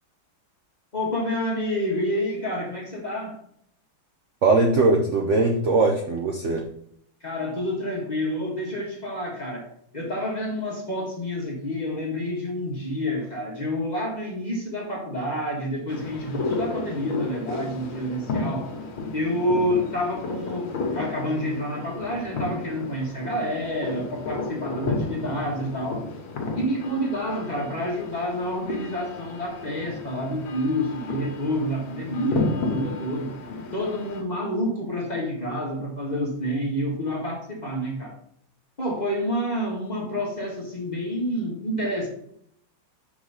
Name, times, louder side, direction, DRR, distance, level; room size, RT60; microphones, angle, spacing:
voice 1, 0.9-3.4 7.2-18.7 19.1-26.0 26.5-33.3 33.7-38.2 38.8-42.1, equal, 25° left, -2 dB, 1.4 m, -28 dB
voice 2, 4.4-6.6, right 3 dB, 75° right, 2 dB, 0.7 m, -20 dB
sound 1, 15.9-34.2, left 3 dB, 70° left, 1.9 m, -33 dB
6.0 x 4.0 x 5.4 m, 0.69 s
omnidirectional pair, 2.2 m